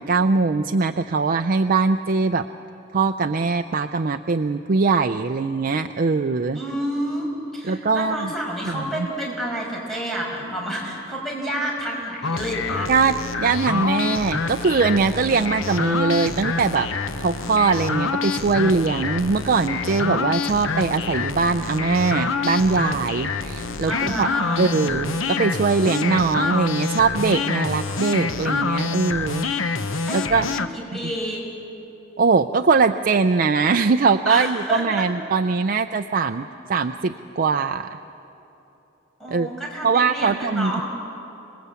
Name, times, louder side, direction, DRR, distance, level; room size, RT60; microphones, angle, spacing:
voice 1, 0.0-2.5 2.9-6.6 7.6-8.3 8.7-9.1 12.9-16.9 17.2-24.3 24.6-29.5 30.1-30.5 32.2-38.0 39.3-39.5 39.8-40.8, right 4 dB, 45° right, 7 dB, 0.5 m, -21 dB
voice 2, 6.5-12.9 23.9-24.7 29.7-31.4 34.3-35.0 39.2-40.8, right 1 dB, ahead, -3 dB, 5.8 m, -29 dB
sound 1, 12.2-30.7, left 4 dB, 75° left, 1.0 m, -26 dB
26.5 x 20.5 x 8.3 m, 3.0 s
head